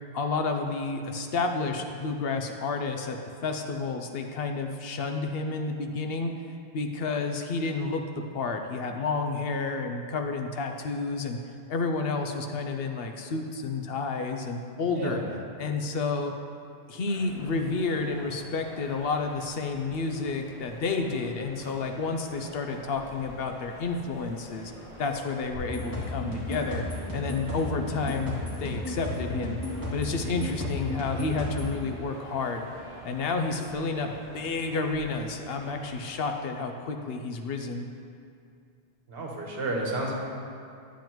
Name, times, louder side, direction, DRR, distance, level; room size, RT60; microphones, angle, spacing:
voice 1, 0.1-3.2 3.4-6.4 6.7-11.4 11.7-15.2 15.6-16.3 16.9-24.7 25.0-26.8 27.1-29.6 29.9-32.7 33.0-37.9, left 4 dB, 65° left, 4 dB, 0.8 m, -30 dB
sound 1, 17.1-36.1, equal, 5° right, 2.0 m, -47 dB
sound 2, 25.5-31.7, left 1 dB, 20° left, 2.1 m, -34 dB
voice 2, 39.1-40.1, right 2 dB, 65° right, -2 dB, 1.3 m, -31 dB
10.5 x 7.1 x 3.0 m, 2.4 s
omnidirectional pair, 1.1 m